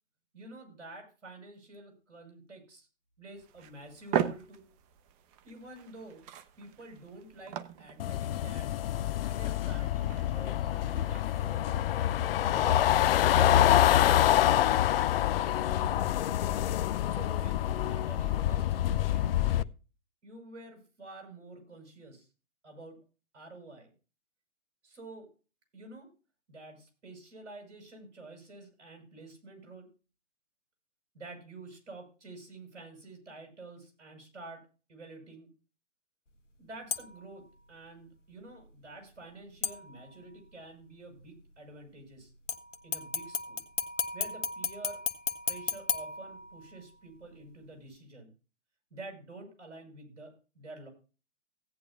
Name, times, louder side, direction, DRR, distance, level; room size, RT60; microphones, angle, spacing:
voice 1, 0.3-2.9 3.2-4.6 5.4-6.3 6.6-8.7 9.2-13.2 13.9-16.5 17.1-19.7 20.2-22.3 22.6-23.0 23.3-23.9 24.8-25.3 25.7-26.1 26.5-29.9 31.1-35.5 36.6-42.3 42.8-43.6 44.1-45.0 45.4-48.3 48.9-50.9, right 2 dB, 75° right, 4 dB, 6.0 m, -49 dB
sound 1, 3.4-12.8, right 10 dB, 30° right, 1.0 m, -40 dB
sound 2, 8.0-19.6, left 12 dB, 50° left, 0.5 m, -26 dB
sound 3, 36.9-37.3 39.6-40.3 42.5-46.9 47.3-47.4, left 5 dB, 80° left, 1.2 m, -35 dB
17.0 x 9.8 x 2.3 m, 0.34 s
hypercardioid pair, 120°, 36 cm